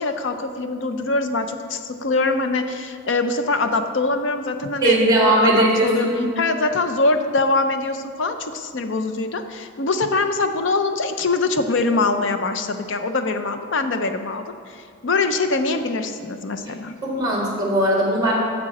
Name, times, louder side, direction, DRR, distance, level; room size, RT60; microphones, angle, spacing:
voice 1, 0.0-6.1 6.4-17.0, left 3 dB, 60° left, 8 dB, 0.5 m, -23 dB
voice 2, 4.8-6.2 17.0-18.4, right 1 dB, 20° right, -3 dB, 1.7 m, -19 dB
7.5 x 7.4 x 4.1 m, 2.4 s
head